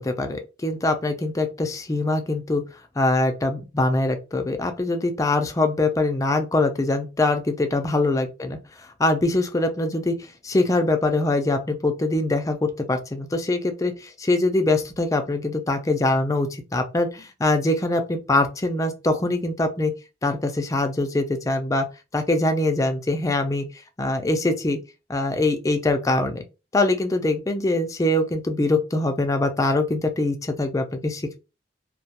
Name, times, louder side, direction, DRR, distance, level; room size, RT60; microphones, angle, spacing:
voice 1, 0.0-2.6 3.0-8.6 9.0-10.2 10.4-19.9 20.2-21.9 22.1-23.7 24.0-24.8 25.1-26.4 26.7-31.4, left 2 dB, 20° left, 0.4 m, -23 dB
2.3 x 2.1 x 2.8 m
head